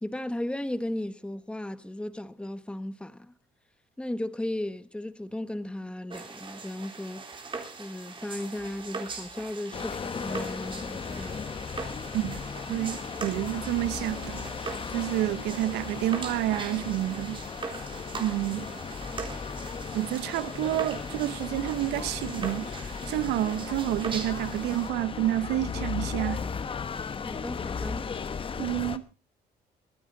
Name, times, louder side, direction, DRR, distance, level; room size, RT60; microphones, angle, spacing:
voice 1, 0.0-3.3 4.0-7.3 7.8-11.5 18.7-18.8 27.2-28.1, left 1 dB, 5° left, 1.0 m, -35 dB
sound 1, 6.1-24.9, right 4 dB, 30° right, 3.7 m, -41 dB
sound 2, 9.7-29.0, left 6 dB, 30° left, 1.1 m, -36 dB
voice 2, 12.7-14.4 14.9-17.4 18.2-18.7 19.9-26.4 28.6-29.1, right 14 dB, 85° right, 0.8 m, -29 dB
23.5 x 9.5 x 3.8 m
cardioid pair, 110°, 17 cm